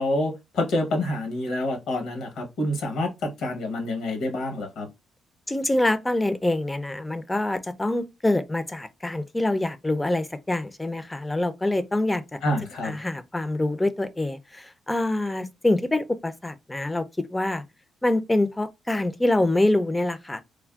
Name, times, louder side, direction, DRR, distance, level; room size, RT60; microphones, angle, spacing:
voice 1, 0.0-4.9 12.4-13.0, left 1 dB, 75° left, 0.9 m, -27 dB
voice 2, 5.5-12.4 12.8-17.6 18.0-20.4, left 1 dB, 15° left, 0.4 m, -25 dB
3.3 x 2.1 x 2.3 m
cardioid pair, 90°, 0 cm